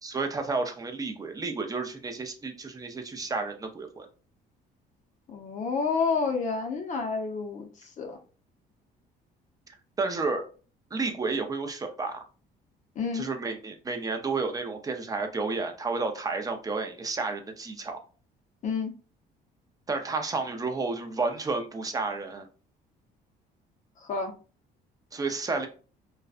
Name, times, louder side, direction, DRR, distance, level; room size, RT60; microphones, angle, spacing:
voice 1, 0.0-4.1 10.0-10.5 10.9-12.2 13.1-18.0 19.9-22.5 25.1-25.7, right 3 dB, 20° right, 0.5 m, -31 dB
voice 2, 5.3-8.2 13.0-13.3 18.6-18.9 24.0-24.4, left 4 dB, 45° left, 0.5 m, -29 dB
2.5 x 2.1 x 2.4 m
cardioid pair, 110°, 17 cm